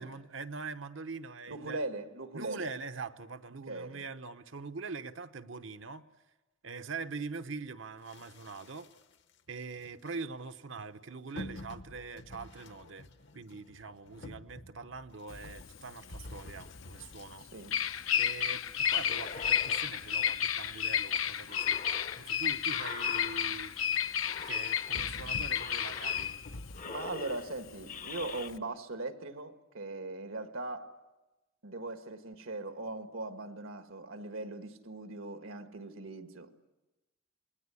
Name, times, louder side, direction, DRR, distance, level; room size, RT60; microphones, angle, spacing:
voice 1, 0.0-1.8 2.3-6.0 6.6-8.9 9.5-13.1 13.3-17.5 18.2-21.8 22.2-23.7 24.4-26.4, right 4 dB, 65° right, 0.9 m, -43 dB
voice 2, 1.5-2.7 3.7-4.0 17.5-17.8 26.8-31.0 31.6-36.7, right 2 dB, 85° right, 1.7 m, -40 dB
sound 1, 8.0-9.3 9.8-10.1 11.4-18.1 18.5-20.7 21.2-21.3 21.4-21.5 22.0-22.1 22.4-22.6 22.9-23.3 23.7-23.9 24.6-26.8, left 1 dB, 60° left, 1.1 m, -49 dB
Bird vocalization bird call bird song, 15.3-28.6, left 8 dB, 80° left, 0.9 m, -32 dB
sound 2, 19.0-21.1 21.5-23.9 24.2-25.1 25.5-26.5 26.7-28.5, left 5 dB, 40° left, 0.8 m, -45 dB
28.0 x 20.5 x 8.4 m
head